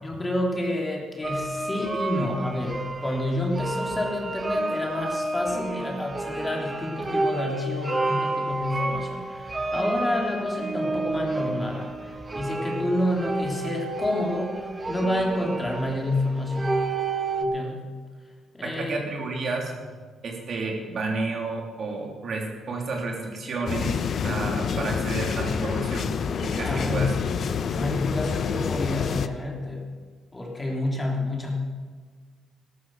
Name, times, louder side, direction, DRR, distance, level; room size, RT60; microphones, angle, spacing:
voice 1, 0.0-16.8 17.4-17.9 18.5-18.9 26.6-27.2 27.7-29.9 30.3-31.5, left 1 dB, 20° left, 0 dB, 3.1 m, -29 dB
sound 1, 1.2-17.4, right 2 dB, 25° right, 1.3 m, -30 dB
voice 2, 18.6-19.7 20.2-26.1 26.4-27.3, right 3 dB, 55° right, 1 dB, 3.0 m, -31 dB
sound 2, 23.7-29.3, left 6 dB, 55° left, 0.7 m, -27 dB
13.5 x 12.5 x 6.3 m, 1.6 s
cardioid pair, 90°, 0 cm